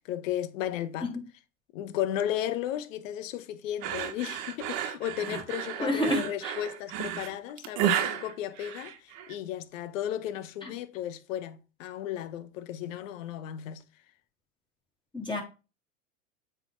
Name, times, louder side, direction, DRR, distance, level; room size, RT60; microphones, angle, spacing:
voice 1, 0.1-1.1 1.7-13.8, left 11 dB, 70° left, 1.0 m, -34 dB
sound 1, 3.8-9.3, right 10 dB, 55° right, 1.2 m, -32 dB
voice 2, 5.8-6.5 10.6-10.7 15.1-15.4, left 1 dB, 10° left, 3.0 m, -29 dB
8.0 x 3.5 x 4.6 m
hypercardioid pair, 95°, 40 cm